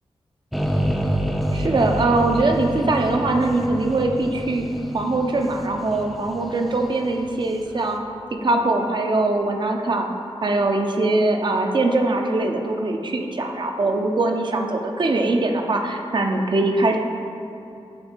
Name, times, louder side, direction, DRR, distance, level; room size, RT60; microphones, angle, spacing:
sound 1, 0.5-7.6, equal, ahead, 0.5 m, -28 dB
voice 1, 1.5-4.7 4.9-8.0 8.3-10.1 10.4-17.0, right 2 dB, 45° right, 3 dB, 0.5 m, -22 dB
8.0 x 2.9 x 4.4 m, 2.7 s
wide cardioid pair, 75°, 11 cm